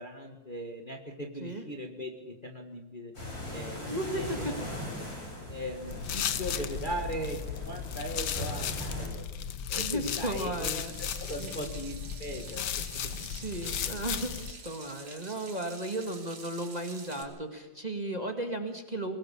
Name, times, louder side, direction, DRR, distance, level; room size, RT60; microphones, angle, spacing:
voice 1, 0.0-3.1 3.5-4.5 5.5-9.2 9.7-10.8 11.2-13.3, equal, 25° left, 2 dB, 1.6 m, -39 dB
sound 1, 3.1-9.1, left 1 dB, 45° left, 7.9 m, -39 dB
voice 2, 3.9-4.5 6.5-6.7 9.8-10.9 11.4-11.8 13.1-19.2, right 1 dB, 20° right, 5 dB, 1.8 m, -35 dB
sound 2, 5.9-14.5, left 9 dB, 60° left, 1.4 m, -35 dB
Water tap faucet / Sink (filling or washing), 10.7-17.2, right 4 dB, 80° right, 3.6 m, -47 dB
22.5 x 19.0 x 7.0 m, 1.1 s
omnidirectional pair, 2.2 m